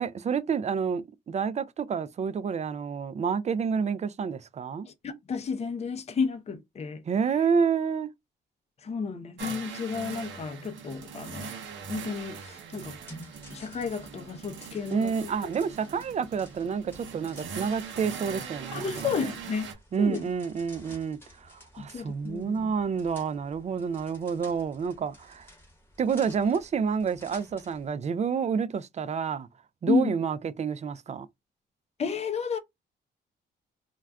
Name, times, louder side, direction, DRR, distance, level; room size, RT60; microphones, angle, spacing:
voice 1, 0.0-4.9 7.1-8.1 14.9-18.9 19.2-19.3 19.9-25.5 26.0-29.5 29.8-31.3, right 6 dB, 35° right, 0.4 m, -29 dB
voice 2, 4.9-7.0 8.8-11.5 11.9-13.0 13.5-15.3 18.7-19.7 20.0-20.2 21.8-22.7 29.9-30.1 32.0-32.6, left 5 dB, 35° left, 0.5 m, -32 dB
sound 1, 9.4-19.7, right 6 dB, 75° right, 0.7 m, -41 dB
sound 2, 12.8-27.9, equal, 10° left, 1.0 m, -53 dB
2.3 x 2.2 x 3.4 m
cardioid pair, 75°, 19 cm